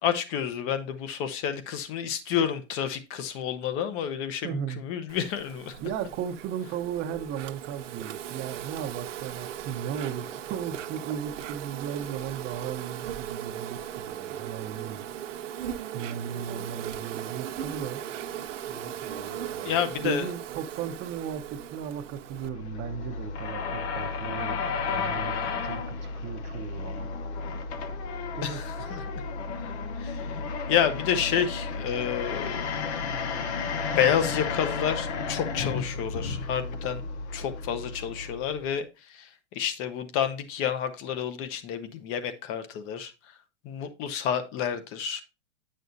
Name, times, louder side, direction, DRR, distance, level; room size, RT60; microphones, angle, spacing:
voice 1, 0.0-5.9 19.6-20.3 28.4-29.0 30.0-30.4 30.7-32.6 34.0-37.0 37.3-43.1 43.6-45.2, left 8 dB, 35° left, 0.9 m, -29 dB
voice 2, 4.4-4.8 5.8-15.0 15.9-18.0 20.0-24.6 24.9-27.1 28.3-28.6 28.9-29.0, right 8 dB, 30° right, 0.8 m, -36 dB
Insect, 5.1-22.5, right 10 dB, 75° right, 1.1 m, -38 dB
Wind instrument woodwind instrument, 7.0-20.5, right 7 dB, 45° right, 1.1 m, -50 dB
sound 1, 22.3-38.7, left 5 dB, 60° left, 1.1 m, -33 dB
9.3 x 6.3 x 2.7 m
supercardioid pair, 140°, 37 cm